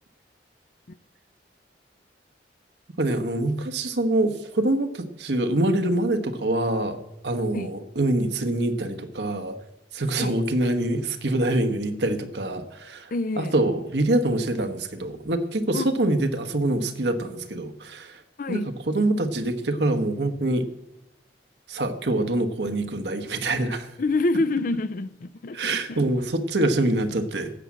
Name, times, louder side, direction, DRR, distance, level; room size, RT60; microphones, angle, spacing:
voice 1, 3.0-9.6 9.9-18.2 18.5-20.7 21.7-23.9 25.5-27.5, right 1 dB, 75° right, 1.3 m, -25 dB
voice 2, 13.1-13.5 15.7-15.9 18.4-18.7 24.0-26.1, left 2 dB, 50° left, 0.5 m, -27 dB
13.5 x 8.3 x 7.5 m
head